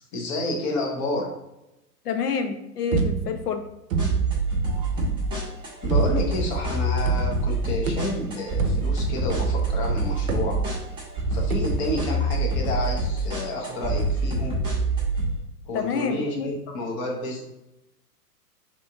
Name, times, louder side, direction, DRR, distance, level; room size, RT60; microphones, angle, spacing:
voice 1, 0.1-1.3 5.8-10.6 11.3-14.6 15.7-17.4, left 2 dB, 20° left, 0 dB, 0.5 m, -30 dB
voice 2, 2.1-3.6 15.7-16.5, left 6 dB, 70° left, 6 dB, 0.7 m, -27 dB
sound 1, 2.9-3.5 3.9-4.4 5.0-5.3 5.9-6.4 7.1-7.6 7.9-9.8 10.3-11.0 11.5-12.1, right 5 dB, 60° right, 0.6 m, -28 dB
sound 2, 4.0-15.3, right 2 dB, 10° right, 0.7 m, -26 dB
2.9 x 2.5 x 3.4 m, 0.91 s
figure-of-eight pair, 110°, 48 cm